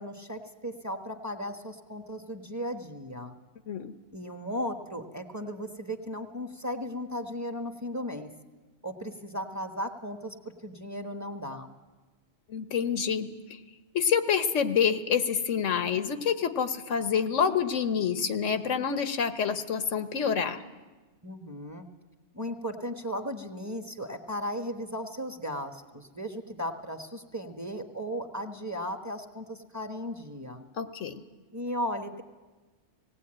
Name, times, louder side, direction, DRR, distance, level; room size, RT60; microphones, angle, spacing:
voice 1, 0.0-3.3 4.1-8.3 8.8-11.7 21.2-21.9 22.3-30.7 31.5-32.2, equal, 15° right, 5 dB, 1.1 m, -36 dB
voice 2, 12.5-13.3 13.9-20.6 30.8-31.1, left 7 dB, 90° left, 9 dB, 1.4 m, -27 dB
18.5 x 18.0 x 8.8 m, 1.3 s
omnidirectional pair, 1.2 m